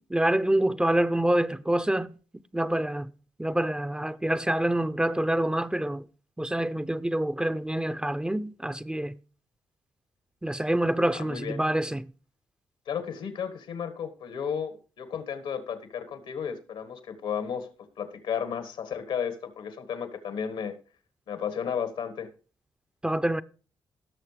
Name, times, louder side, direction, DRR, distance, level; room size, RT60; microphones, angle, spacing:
voice 1, 0.1-2.1 2.5-3.1 3.4-6.1 6.4-9.2 10.4-12.1 23.0-23.4, right 1 dB, 10° right, 0.5 m, -26 dB
voice 2, 11.2-11.6 12.9-17.7 18.0-20.7 21.3-22.3, left 7 dB, 80° left, 1.6 m, -33 dB
17.0 x 6.5 x 3.3 m
supercardioid pair, 60°, 9 cm